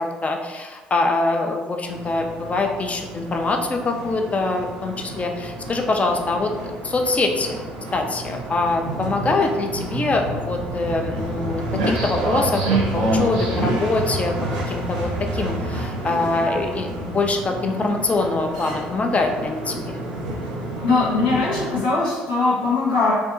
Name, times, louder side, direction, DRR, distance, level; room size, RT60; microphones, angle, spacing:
voice 1, 0.0-7.6 7.9-14.3 14.7-20.0, left 3 dB, 30° left, 3 dB, 0.4 m, -24 dB
sound 1, 1.8-21.8, right 2 dB, 85° right, 0.5 m, -28 dB
voice 2, 20.8-23.1, left 3 dB, 85° left, -6 dB, 0.8 m, -20 dB
2.6 x 2.3 x 2.5 m, 1.3 s
hypercardioid pair, 55°, 4 cm